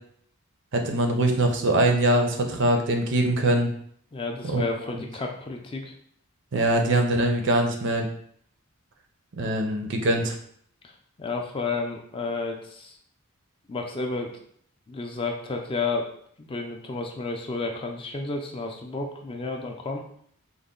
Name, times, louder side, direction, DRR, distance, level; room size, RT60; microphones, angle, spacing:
voice 1, 0.7-3.7 4.4-4.6 4.9-5.0 6.5-8.1 9.3-10.4, right 1 dB, 55° right, 4 dB, 0.5 m, -23 dB
voice 2, 4.1-5.9 10.8-10.9 11.2-13.0 13.7-14.3 14.9-16.1 16.4-20.0, left 3 dB, 25° left, 2 dB, 0.4 m, -31 dB
3.9 x 2.1 x 3.7 m, 0.64 s
head